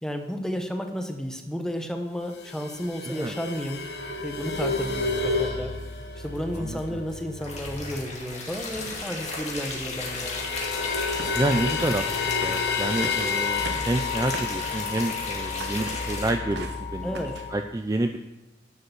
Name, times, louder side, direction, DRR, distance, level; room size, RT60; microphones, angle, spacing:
voice 1, 0.0-3.8 4.2-5.7 6.2-10.5 17.0-17.4, equal, 5° left, 4 dB, 1.0 m, -32 dB
sound 1, 2.3-8.1 8.4-8.5 8.7-17.6, left 4 dB, 75° left, 1.2 m, -31 dB
voice 2, 6.5-7.0 11.3-17.2 17.5-18.2, right 1 dB, 20° right, 6 dB, 0.4 m, -29 dB
sound 2, 7.4-16.3, left 3 dB, 40° left, 2.3 m, -34 dB
sound 3, 9.2-10.2 11.2-11.5 11.8-12.1 12.4-12.7 13.0-15.2 15.6-16.2 16.5-16.9 17.1-17.5, right 3 dB, 80° right, 0.9 m, -40 dB
11.5 x 6.6 x 6.8 m, 1.0 s
head